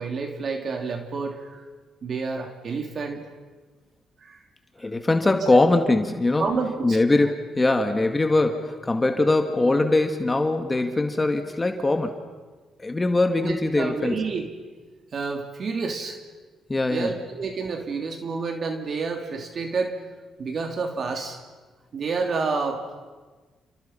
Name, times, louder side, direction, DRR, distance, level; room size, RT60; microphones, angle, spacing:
voice 1, 0.0-1.6 2.0-3.2 4.2-4.4 5.5-5.6 6.4-7.0 13.4-14.5 15.1-16.2 16.9-20.0 20.4-21.4 21.9-22.8, right 4 dB, 50° right, 4 dB, 3.0 m, -29 dB
voice 2, 4.8-6.5 6.8-12.1 12.8-14.2 16.7-17.1, left 2 dB, 20° left, 6 dB, 2.1 m, -22 dB
30.0 x 29.0 x 5.9 m, 1.4 s
cardioid pair, 90°, 0 cm